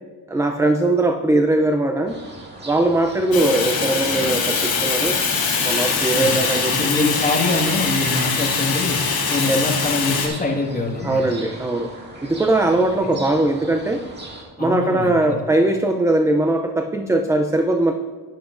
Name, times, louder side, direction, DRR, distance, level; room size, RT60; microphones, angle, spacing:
voice 1, 0.3-2.2 2.6-5.2 5.6-7.1 9.5-9.6 11.0-11.9 12.2-14.0 14.6-17.9, right 2 dB, 5° right, 5 dB, 0.4 m, -20 dB
sound 1, 2.1-14.4, right 2 dB, 25° right, 2.0 m, -38 dB
Fire, 3.3-10.3, left 5 dB, 55° left, 2.3 m, -22 dB
voice 2, 6.7-9.0 9.3-11.2 12.6-12.7 13.0-13.1 14.6-15.4, left 2 dB, 20° left, -1 dB, 1.7 m, -24 dB
11.5 x 10.0 x 2.5 m, 1.4 s
cardioid pair, 110°, 42 cm